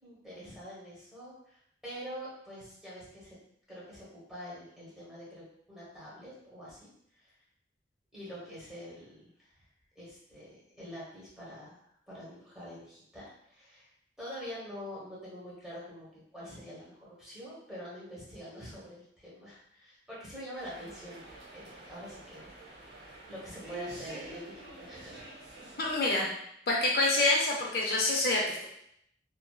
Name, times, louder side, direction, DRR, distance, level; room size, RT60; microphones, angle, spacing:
voice 1, 0.0-3.4 3.7-7.3 8.1-9.6 9.9-13.9 14.2-22.5 22.9-25.3, equal, 5° right, -8 dB, 1.0 m, -46 dB
sound 1, 20.5-26.0, right 1 dB, 75° right, 0.7 m, -48 dB
voice 2, 25.8-26.3 26.7-28.7, left 2 dB, 55° left, -2 dB, 0.4 m, -27 dB
2.9 x 2.5 x 2.2 m, 0.71 s
head